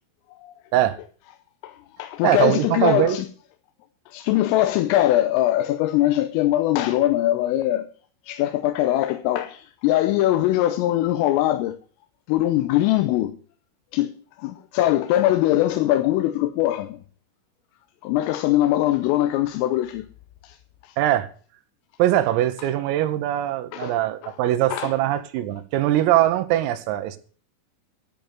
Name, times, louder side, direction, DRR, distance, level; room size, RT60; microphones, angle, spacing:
voice 1, 1.6-3.3 4.1-7.9 8.2-11.8 12.3-13.4 13.9-17.0 18.0-20.1 20.4-20.6 20.8-21.0 23.7-24.0 24.2-24.4 24.7-24.9, left 14 dB, 85° left, 3.4 m, -22 dB
voice 2, 2.2-3.2 21.0-21.3 22.0-27.2, right 13 dB, 85° right, 3.8 m, -21 dB
13.5 x 5.3 x 9.1 m
omnidirectional pair, 5.9 m